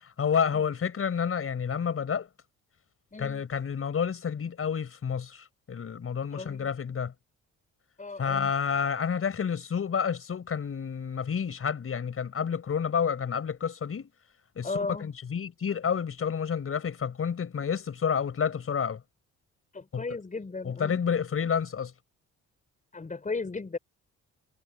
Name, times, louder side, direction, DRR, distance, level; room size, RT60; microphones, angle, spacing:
voice 1, 0.2-2.3 3.2-7.1 8.2-14.1 14.6-14.7 15.0-19.0 19.9-20.0 20.6-21.9, left 7 dB, 50° left, 6.0 m, -29 dB
voice 2, 3.1-3.4 6.3-6.7 8.0-8.5 14.6-15.1 19.7-21.0 22.9-23.8, left 3 dB, 25° left, 4.7 m, -35 dB
cardioid pair, 90°, 30 cm